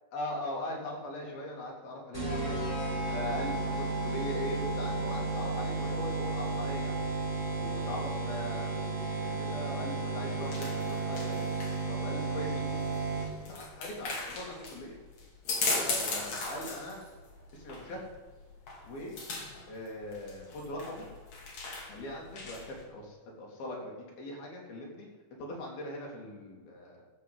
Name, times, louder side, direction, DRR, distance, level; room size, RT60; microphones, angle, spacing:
voice 1, 0.1-2.6 3.1-7.0 7.6-11.5 11.9-12.9 13.5-15.0 15.8-17.0 17.5-18.0 18.8-19.1 19.7-21.1 21.9-23.9 24.2-25.1 25.4-27.1, left 1 dB, 75° left, -1 dB, 4.7 m, -40 dB
sound 1, 2.1-13.5, right 3 dB, 15° right, 3.8 m, -33 dB
sound 2, 9.9-22.8, left 3 dB, 50° left, 3.4 m, -38 dB
12.5 x 7.1 x 8.0 m, 1.4 s
omnidirectional pair, 4.3 m